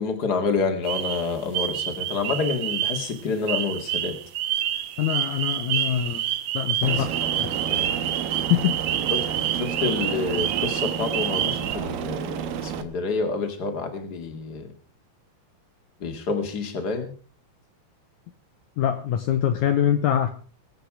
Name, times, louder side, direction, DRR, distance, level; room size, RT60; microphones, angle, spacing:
voice 1, 0.0-4.2 6.8-7.1 7.7-7.9 9.1-9.2 9.6-14.7 16.0-17.1, left 4 dB, 30° left, 6 dB, 2.3 m, -28 dB
sound 1, 0.8-3.2 3.5-11.8, right 11 dB, 70° right, 1.9 m, -28 dB
voice 2, 5.0-6.2 6.5-7.1 7.4-7.7 8.5-8.8 18.8-20.3, left 10 dB, 70° left, 7 dB, 2.2 m, -23 dB
Aircraft, 6.8-12.8, right 8 dB, 85° right, 2.9 m, -31 dB
23.0 x 8.7 x 4.9 m, 0.40 s
omnidirectional pair, 4.0 m